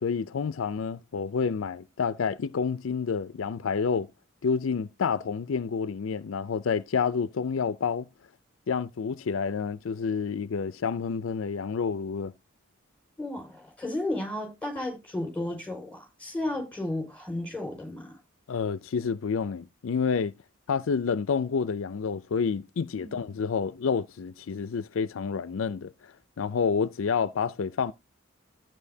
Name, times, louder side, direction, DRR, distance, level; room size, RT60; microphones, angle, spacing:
voice 1, 0.0-4.1 4.4-8.1 8.7-12.3 18.5-20.3 20.7-27.9, left 5 dB, 70° left, 0.4 m, -29 dB
voice 2, 13.2-18.2 22.9-23.2, left 1 dB, 5° left, 5.0 m, -33 dB
13.5 x 9.0 x 2.7 m
head